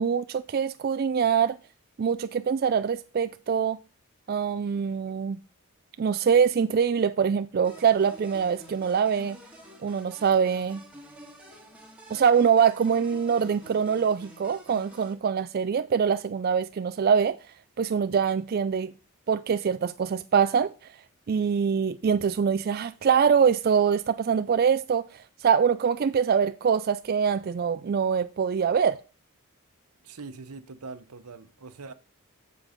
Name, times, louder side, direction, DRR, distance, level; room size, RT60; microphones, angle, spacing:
voice 1, 0.0-1.6 2.0-3.8 4.3-5.4 6.0-9.4 9.8-10.8 12.1-17.4 17.8-18.9 19.3-20.7 21.3-29.0, right 7 dB, 45° right, 0.3 m, -24 dB
sound 1, 7.6-15.1, equal, 5° right, 1.8 m, -49 dB
voice 2, 30.0-31.9, right 4 dB, 85° right, 0.9 m, -42 dB
7.2 x 7.1 x 5.1 m
head